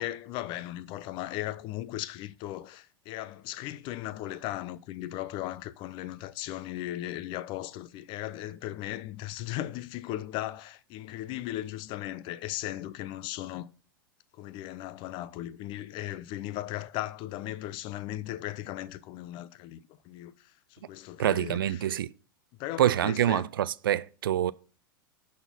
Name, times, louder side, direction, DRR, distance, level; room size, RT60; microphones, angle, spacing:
voice 1, 0.0-13.7 14.3-21.9 22.6-23.5, left 14 dB, 45° left, 0.6 m, -37 dB
voice 2, 21.2-22.1 22.8-24.5, right 11 dB, 75° right, 0.4 m, -26 dB
11.0 x 4.3 x 5.5 m
hypercardioid pair, 95°, 12 cm